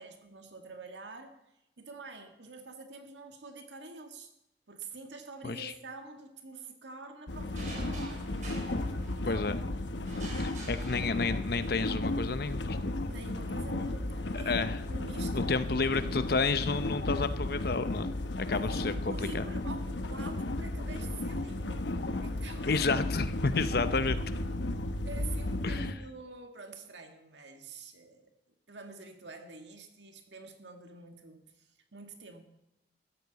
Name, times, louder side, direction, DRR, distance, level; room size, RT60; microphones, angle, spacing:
voice 1, 0.0-1.4 1.8-4.3 4.7-8.3 9.1-9.5 13.1-15.7 18.5-21.9 22.2-22.8 25.0-28.3 28.7-32.4, right 3 dB, 85° right, 5 dB, 1.8 m, -47 dB
sound 1, 7.3-25.9, left 2 dB, 85° left, 1.0 m, -34 dB
sound 2, 7.6-9.5 10.1-11.6, right 1 dB, 45° right, 4.1 m, -47 dB
voice 2, 10.4-12.9 14.3-14.8 15.3-19.4 22.7-24.2 25.6-25.9, left 4 dB, 60° left, 12 dB, 0.7 m, -31 dB
14.5 x 13.0 x 4.1 m, 0.87 s
head